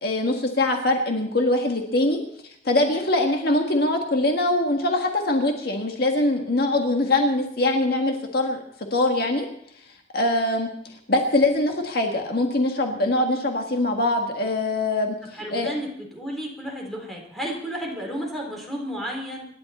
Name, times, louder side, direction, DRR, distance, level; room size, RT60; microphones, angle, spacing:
voice 1, 0.0-2.2 2.6-8.6 8.9-9.5 10.1-10.7 11.1-15.2 15.5-15.7, left 2 dB, 55° left, 3 dB, 1.7 m, -22 dB
voice 2, 15.3-19.5, equal, ahead, -1 dB, 3.7 m, -32 dB
26.0 x 11.0 x 4.3 m, 0.69 s
head